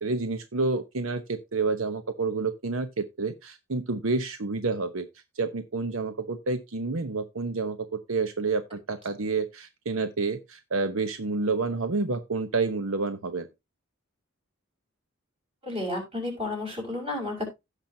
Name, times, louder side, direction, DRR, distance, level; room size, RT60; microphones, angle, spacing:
voice 1, 0.0-5.1 5.3-13.5, right 3 dB, 75° right, 0.9 m, -29 dB
voice 2, 15.6-17.5, left 2 dB, 25° right, 5.8 m, -32 dB
16.5 x 5.9 x 2.8 m
head